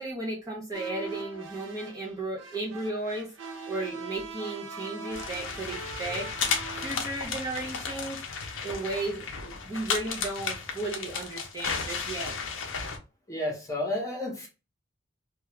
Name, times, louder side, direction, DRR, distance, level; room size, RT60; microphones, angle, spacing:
voice 1, 0.0-3.3 3.7-6.3 6.8-12.4, right 2 dB, 20° right, -2 dB, 0.6 m, -35 dB
sound 1, 0.7-6.9, right 4 dB, 70° right, 0.5 m, -41 dB
sound 2, 5.1-13.0, left 5 dB, 80° left, 0.6 m, -34 dB
voice 2, 13.3-14.5, left 1 dB, 15° left, -2 dB, 0.9 m, -31 dB
2.3 x 2.3 x 3.0 m, 0.31 s
head